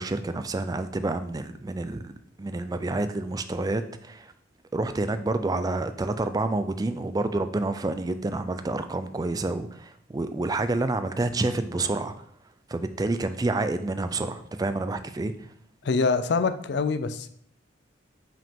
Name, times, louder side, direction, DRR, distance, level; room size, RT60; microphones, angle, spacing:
voice 1, 0.0-2.1 2.4-4.3 4.7-12.1 12.7-15.3, right 2 dB, 20° right, 10 dB, 0.3 m, -28 dB
voice 2, 15.8-17.3, left 4 dB, 60° left, 12 dB, 0.4 m, -25 dB
5.6 x 5.0 x 3.6 m, 0.67 s
head